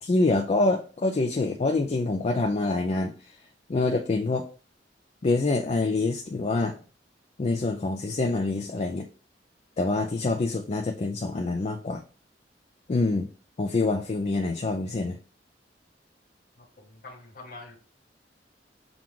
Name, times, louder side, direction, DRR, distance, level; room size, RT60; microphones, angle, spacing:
voice 1, 0.0-3.1 3.7-4.5 5.2-6.8 7.4-9.1 9.8-12.0 12.9-13.3 13.6-15.2, left 3 dB, 35° left, 0.4 m, -26 dB
voice 2, 16.6-17.8, left 3 dB, 55° left, 1.2 m, -45 dB
5.9 x 2.4 x 3.6 m
head